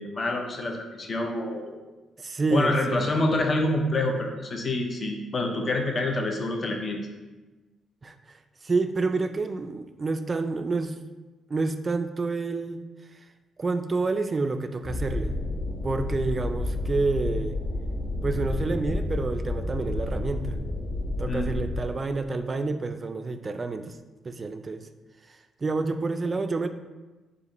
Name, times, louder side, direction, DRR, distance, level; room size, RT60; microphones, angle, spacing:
voice 1, 0.0-1.7 2.5-7.0 21.3-21.5, left 2 dB, 40° left, 2 dB, 0.6 m, -27 dB
voice 2, 2.2-3.0 8.0-8.1 8.6-11.0 11.5-12.8 13.6-15.4 15.8-17.6 18.2-20.6 21.2-24.0 24.2-24.9 25.3-26.7, right 3 dB, 30° right, 9 dB, 0.3 m, -28 dB
sound 1, 14.8-21.8, left 2 dB, 65° left, 0.9 m, -30 dB
4.8 x 2.5 x 4.0 m, 1.2 s
cardioid pair, 90°, 0 cm